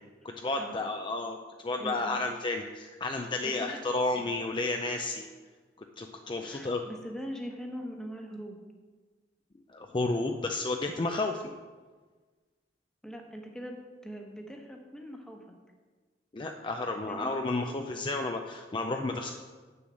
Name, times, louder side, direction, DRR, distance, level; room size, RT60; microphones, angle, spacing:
voice 1, 0.2-1.4 1.6-5.3 6.0-6.8 9.7-11.4 16.3-19.3, left 2 dB, 25° left, 3 dB, 0.5 m, -32 dB
voice 2, 1.8-2.1 3.4-3.9 6.4-8.6 13.0-15.5 17.1-17.3, equal, 5° left, 2 dB, 1.1 m, -42 dB
8.0 x 6.9 x 6.3 m, 1.4 s
head